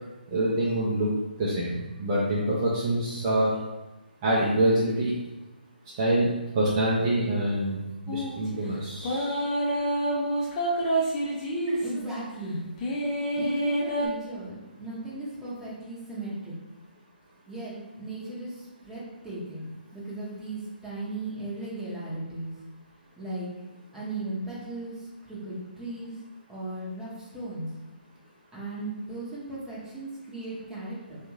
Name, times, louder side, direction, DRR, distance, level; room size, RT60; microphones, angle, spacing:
voice 1, 0.3-1.1 1.4-1.7 2.0-3.5 4.2-5.1 6.0-6.3 6.5-9.4, right 1 dB, 30° right, -6 dB, 0.6 m, -25 dB
sound 1, 8.1-8.4 9.0-12.0 12.8-14.1, right 1 dB, 25° left, 0.7 m, -27 dB
voice 2, 11.8-12.7 13.3-16.5 17.5-22.5 23.2-23.5 23.9-26.1 26.5-27.7 28.5-31.2, right 2 dB, 5° right, -8 dB, 0.9 m, -36 dB
3.5 x 2.4 x 3.1 m, 1.1 s
figure-of-eight pair, 145°, 6 cm